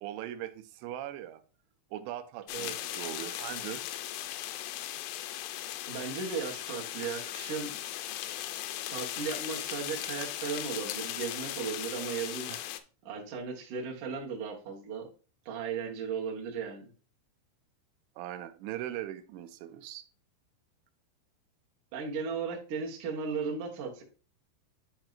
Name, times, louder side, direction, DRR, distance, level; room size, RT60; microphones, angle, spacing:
voice 1, 0.0-1.4 1.9-3.8 12.5-12.6 18.2-20.0, right 12 dB, 85° right, 11 dB, 2.7 m, -40 dB
sound 1, 2.5-12.8, left 13 dB, 85° left, 3.0 m, -38 dB
voice 2, 5.9-7.8 8.9-12.5 13.0-15.1 15.5-16.9 21.9-24.0, right 5 dB, 65° right, -2 dB, 2.0 m, -36 dB
10.5 x 4.6 x 2.5 m, 0.37 s
omnidirectional pair, 5.4 m